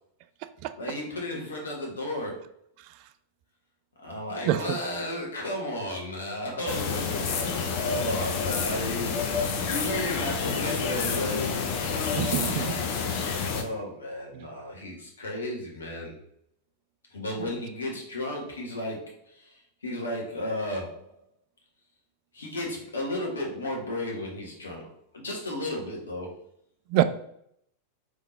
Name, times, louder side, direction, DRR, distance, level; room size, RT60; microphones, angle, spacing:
voice 1, 0.7-2.5 4.0-11.6 13.4-16.1 17.1-21.1 22.3-24.9 25.1-26.3, left 1 dB, 70° left, -1 dB, 1.4 m, -34 dB
voice 2, 4.4-4.8 12.1-12.8 14.4-14.5 26.9-27.0, right 13 dB, 45° right, 11 dB, 0.3 m, -25 dB
sound 1, 6.7-13.6, left 5 dB, 45° left, 0.7 m, -29 dB
3.7 x 3.4 x 4.1 m, 0.70 s
figure-of-eight pair, 90°, 0 cm